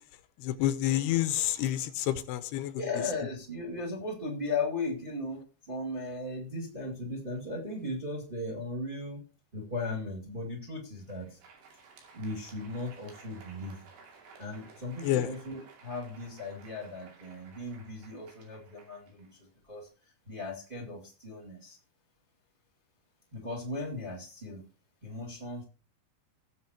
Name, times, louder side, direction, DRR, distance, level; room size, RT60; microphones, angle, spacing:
voice 1, 0.4-2.8 15.0-15.3, left 13 dB, 80° left, 2.7 m, -29 dB
voice 2, 2.7-9.2 9.5-11.4 12.1-13.8 14.4-19.4 19.7-19.9 20.2-21.8 23.3-24.6 25.0-25.6, left 2 dB, 20° right, 1.6 m, -37 dB
Crowd, 10.9-19.8, right 5 dB, 85° right, 4.8 m, -56 dB
19.0 x 7.7 x 2.9 m
omnidirectional pair, 4.9 m